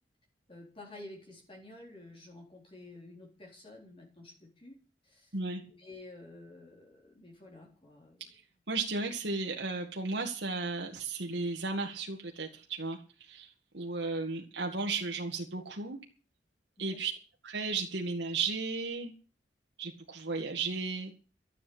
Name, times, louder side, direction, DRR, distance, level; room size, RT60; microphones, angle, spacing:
voice 1, 0.5-4.7 5.0-5.4 5.6-8.2 16.8-17.0, left 2 dB, 30° left, -2 dB, 3.9 m, -51 dB
voice 2, 8.7-13.5 13.7-16.0 16.8-17.1 17.4-19.1 19.8-21.1, right 3 dB, 85° right, 1 dB, 2.1 m, -34 dB
13.5 x 8.4 x 8.8 m, 0.37 s
head